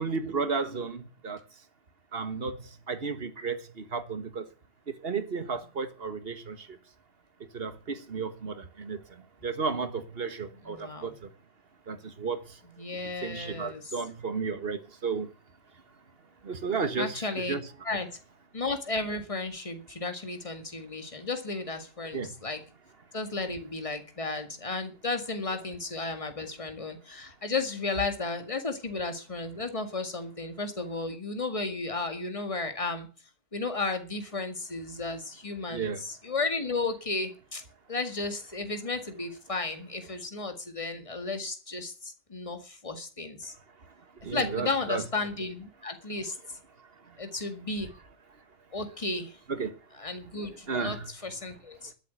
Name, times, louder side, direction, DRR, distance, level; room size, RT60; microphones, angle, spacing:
voice 1, 0.0-1.4 2.1-4.5 4.9-6.6 7.5-9.0 9.4-11.2 11.9-12.4 13.2-15.3 16.4-17.7 22.1-22.3 35.7-36.0 44.2-45.0 49.5-49.7 50.7-51.1, right 5 dB, 60° right, 1.7 m, -33 dB
voice 2, 10.6-11.1 12.8-13.9 17.0-17.6 17.8-18.1 18.5-22.6 23.1-33.1 33.5-37.6 37.9-43.5 44.3-46.4 47.2-47.9 48.7-49.4 50.0-51.9, left 3 dB, 30° left, 2.1 m, -34 dB
12.5 x 7.7 x 9.3 m
omnidirectional pair, 1.1 m